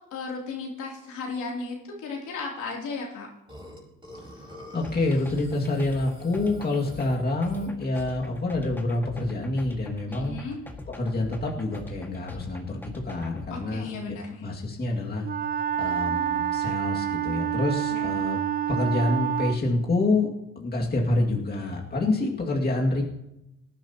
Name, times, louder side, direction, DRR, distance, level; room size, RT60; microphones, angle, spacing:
voice 1, 0.1-3.3 10.2-10.6 13.5-14.4 17.9-18.3, left 4 dB, 80° left, -2 dB, 3.1 m, -35 dB
Burping eructation, 3.5-8.3, equal, 15° right, 5.7 m, -46 dB
voice 2, 4.7-10.4 11.0-15.3 15.8-18.4 18.7-20.3 20.6-23.0, left 2 dB, 30° left, -1 dB, 2.2 m, -27 dB
sound 1, 4.8-13.5, left 2 dB, 5° left, 1.8 m, -42 dB
Wind instrument woodwind instrument, 15.2-19.6, right 10 dB, 30° right, 0.6 m, -28 dB
18.5 x 10.5 x 2.9 m, 0.87 s
cardioid pair, 90°, 30 cm